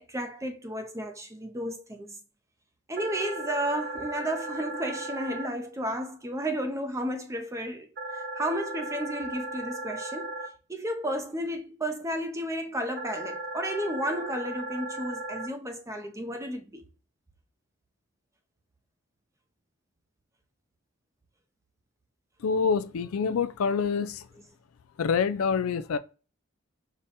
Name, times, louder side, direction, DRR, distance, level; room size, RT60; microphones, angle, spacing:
voice 1, 0.0-2.2 2.9-10.4 10.7-16.8, right 1 dB, 15° right, 0.6 m, -33 dB
sound 1, 3.0-5.5 8.0-10.5 13.0-15.5, right 2 dB, 50° right, 0.7 m, -36 dB
voice 2, 22.4-24.3 25.0-26.0, left 6 dB, 80° left, 0.4 m, -26 dB
5.0 x 2.2 x 4.0 m
head